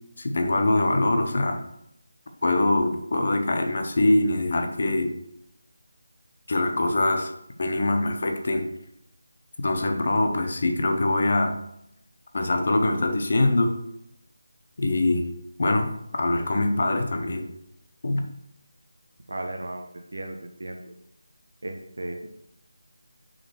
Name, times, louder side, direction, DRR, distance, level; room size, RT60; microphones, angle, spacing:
voice 1, 0.2-1.7 2.4-5.1 6.5-7.3 7.6-8.7 9.6-11.6 12.3-13.8 14.8-15.3 15.6-17.5 18.0-18.2, left 2 dB, 50° left, 5 dB, 0.8 m, -23 dB
voice 2, 19.3-20.9 21.6-22.3, right 1 dB, 75° right, 3 dB, 0.8 m, -35 dB
5.3 x 3.9 x 4.5 m, 0.78 s
figure-of-eight pair, 170°, 0 cm